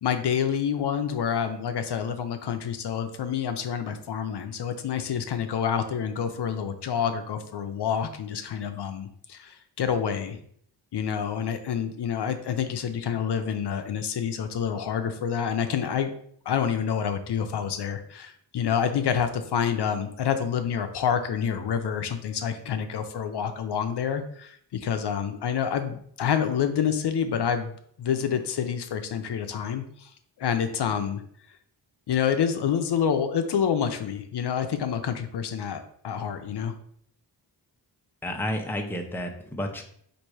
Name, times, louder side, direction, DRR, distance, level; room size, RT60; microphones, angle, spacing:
voice 1, 0.0-10.4 10.9-16.1 16.5-27.7 28.0-30.1 30.4-31.2 32.1-36.7, left 8 dB, 65° left, 7 dB, 0.6 m, -28 dB
voice 2, 38.2-39.8, left 1 dB, 5° left, 3 dB, 0.6 m, -31 dB
4.3 x 2.6 x 4.7 m, 0.64 s
wide cardioid pair, 90°, 43 cm